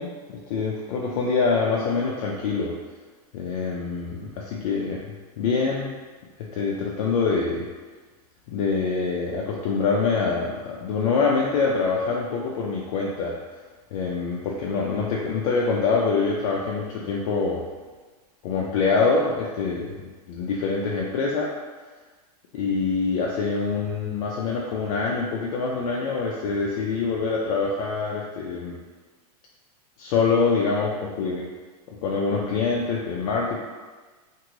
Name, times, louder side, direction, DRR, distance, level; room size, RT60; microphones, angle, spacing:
voice 1, 0.0-2.7 3.3-5.9 6.4-7.7 8.5-13.4 13.9-17.6 18.4-20.0 20.3-21.5 22.5-28.8 30.0-31.5 31.9-33.6, left 4 dB, 60° left, -3 dB, 0.5 m, -25 dB
2.7 x 2.6 x 3.0 m, 1.3 s
supercardioid pair, 145°, 20 cm